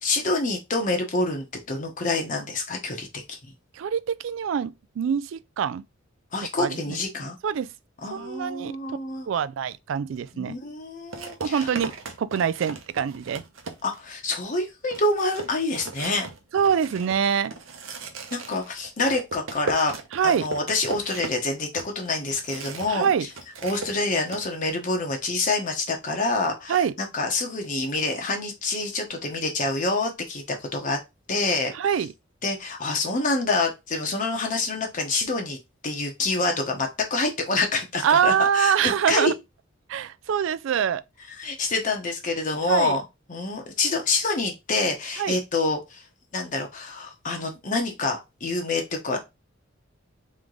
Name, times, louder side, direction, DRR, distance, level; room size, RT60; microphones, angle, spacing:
voice 1, 0.0-3.4 6.3-7.4 8.0-9.3 10.3-11.7 13.8-16.3 18.3-19.9 20.2-23.1 23.6-31.0 31.3-31.7 32.4-35.6 35.8-39.3 41.4-43.0 43.3-46.0 46.3-49.2, left 3 dB, 40° left, 0.9 m, -27 dB
voice 2, 3.7-5.8 6.6-7.0 7.4-7.7 8.1-8.8 9.3-10.6 11.4-13.4 16.5-17.5 20.1-20.5 22.9-23.3 26.7-26.9 31.7-32.1 38.0-39.3 39.9-41.0 42.7-43.0 45.2-45.4, right 7 dB, 65° right, 0.3 m, -24 dB
sound 1, 10.1-10.3 11.1-14.1 14.5-14.6 14.9-23.0 23.3-24.5, right 4 dB, 90° right, 0.9 m, -37 dB
3.5 x 3.2 x 3.8 m
head